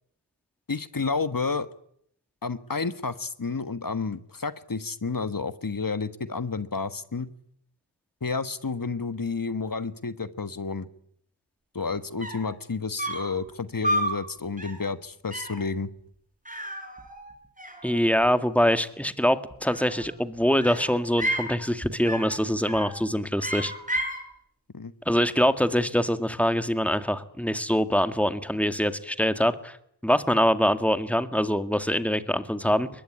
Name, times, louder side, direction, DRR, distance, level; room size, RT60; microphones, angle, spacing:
voice 1, 0.7-1.7 2.4-7.3 8.2-10.9 11.7-15.9 24.7-24.9, left 4 dB, 50° left, 13 dB, 1.5 m, -30 dB
sound 1, 11.9-12.0 12.2-12.5 13.0-13.4 13.8-14.2 14.6-14.9 15.3-15.6 16.4-17.3 17.6-18.3 19.5-20.1 20.6-21.5 22.0-22.4 22.7-23.0 23.4-24.2, right 1 dB, 20° right, 6.2 m, -31 dB
voice 2, 17.8-23.7 25.1-29.8 30.0-32.9, equal, 5° left, 10 dB, 2.0 m, -24 dB
23.0 x 21.0 x 9.9 m, 0.69 s
wide cardioid pair, 40°, 41 cm